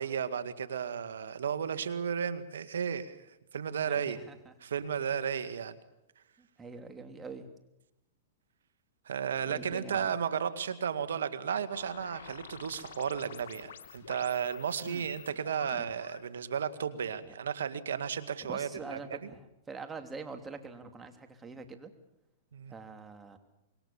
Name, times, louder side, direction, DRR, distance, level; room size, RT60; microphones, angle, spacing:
voice 1, 0.0-3.2 3.5-4.2 4.6-5.8 9.1-19.3 22.5-22.7, right 7 dB, 85° right, 12 dB, 1.8 m, -34 dB
voice 2, 3.9-4.5 6.4-7.5 9.5-10.2 14.9-15.0 15.6-15.9 17.2-17.3 18.4-21.9 22.7-23.4, right 4 dB, 15° right, 6 dB, 3.0 m, -45 dB
sound 1, 11.7-16.3, left 8 dB, 70° left, 2.6 m, -49 dB
26.0 x 22.5 x 7.2 m, 0.88 s
hypercardioid pair, 125°, 0 cm